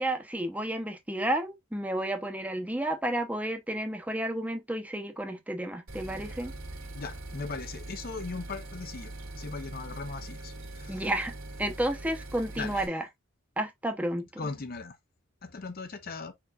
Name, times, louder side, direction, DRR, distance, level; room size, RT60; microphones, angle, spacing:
voice 1, 0.0-6.5 10.9-11.3 11.6-13.0 13.6-14.3, right 1 dB, 5° right, 0.7 m, -31 dB
sound 1, 5.9-12.9, right 2 dB, 75° right, 1.9 m, -42 dB
voice 2, 6.9-11.1 12.5-12.9 14.4-15.0 15.4-16.3, left 4 dB, 45° left, 0.7 m, -39 dB
5.0 x 4.4 x 2.3 m
head